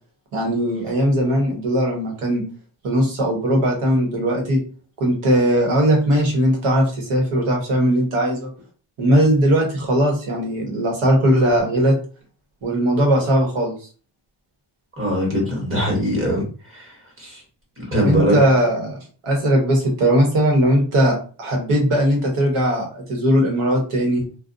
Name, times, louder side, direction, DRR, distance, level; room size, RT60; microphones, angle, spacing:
voice 1, 0.3-2.4 2.8-4.6 5.0-8.5 9.0-11.9 12.6-13.7 18.0-24.2, right 1 dB, 85° right, 0 dB, 1.2 m, -19 dB
voice 2, 15.0-17.4 17.8-18.4, equal, 25° right, -1 dB, 1.1 m, -22 dB
2.5 x 2.2 x 2.5 m, 0.39 s
wide cardioid pair, 145°, 49 cm